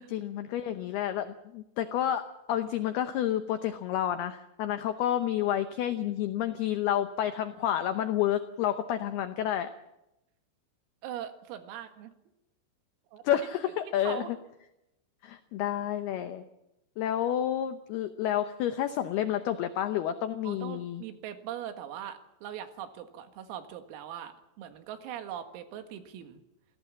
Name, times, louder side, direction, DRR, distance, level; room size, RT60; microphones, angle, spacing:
voice 1, 0.1-9.7 13.2-14.2 15.2-16.4 17.0-21.0, left 11 dB, 85° left, 9 dB, 2.2 m, -30 dB
voice 2, 11.0-12.1 13.1-13.4 13.9-14.3 20.4-26.4, right 10 dB, 85° right, 8 dB, 4.4 m, -41 dB
28.0 x 17.5 x 7.5 m, 0.89 s
omnidirectional pair, 5.9 m